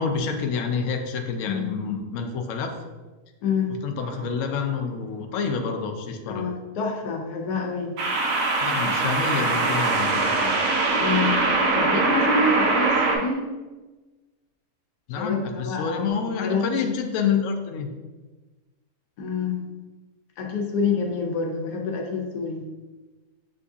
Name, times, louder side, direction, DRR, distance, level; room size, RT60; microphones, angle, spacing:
voice 1, 0.0-2.7 3.8-6.4 8.6-10.5 15.1-17.9, left 5 dB, 65° left, 4 dB, 0.8 m, -28 dB
voice 2, 3.4-3.7 6.3-8.0 11.0-11.4 11.7-13.4 15.2-16.1 16.4-16.8 19.2-19.6 20.4-22.6, left 4 dB, 85° left, 2 dB, 1.2 m, -27 dB
sound 1, 4.0-4.3 8.0-13.2, right 3 dB, 90° right, 1.3 m, -22 dB
7.4 x 2.6 x 2.3 m, 1.2 s
omnidirectional pair, 1.7 m